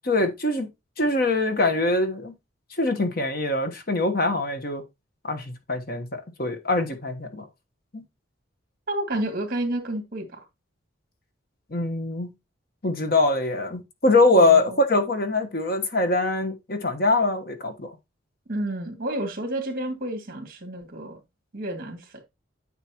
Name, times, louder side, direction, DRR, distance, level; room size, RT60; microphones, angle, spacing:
voice 1, 0.0-0.7 1.0-2.3 2.8-4.8 5.2-7.5 7.9-8.0 11.7-12.3 12.8-17.9, left 2 dB, 45° left, 1.3 m, -23 dB
voice 2, 8.9-10.4 14.3-14.8 18.5-21.2 21.5-22.2, right 1 dB, 45° right, 2.2 m, -30 dB
9.4 x 5.8 x 3.0 m
head